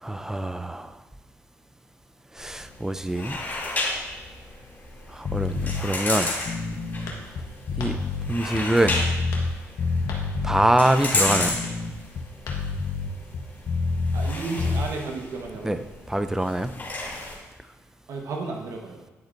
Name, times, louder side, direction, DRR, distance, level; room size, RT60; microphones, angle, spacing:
voice 1, 0.0-1.0 2.3-3.4 5.1-6.3 7.8-8.0 8.3-9.0 10.4-11.6 15.6-15.8 16.1-16.7, right 1 dB, 10° right, 11 dB, 0.5 m, -24 dB
sound 1, 2.4-17.4, left 2 dB, 35° left, 2.7 m, -33 dB
sound 2, 5.2-5.8 6.4-9.5 9.8-10.6 11.2-14.3 14.6-14.8, left 4 dB, 55° left, 0.9 m, -28 dB
sound 3, 6.3-6.7 7.1-7.2 7.8-8.0 8.6-8.7 9.3-9.5 10.1-10.3 10.9-11.0 11.6-11.8 12.5-12.6, left 3 dB, 90° left, 1.4 m, -39 dB
voice 2, 14.1-15.8 18.1-19.0, right 3 dB, 70° right, 0 dB, 1.3 m, -33 dB
10.5 x 6.5 x 2.6 m, 1.2 s
cardioid pair, 85°, 6 cm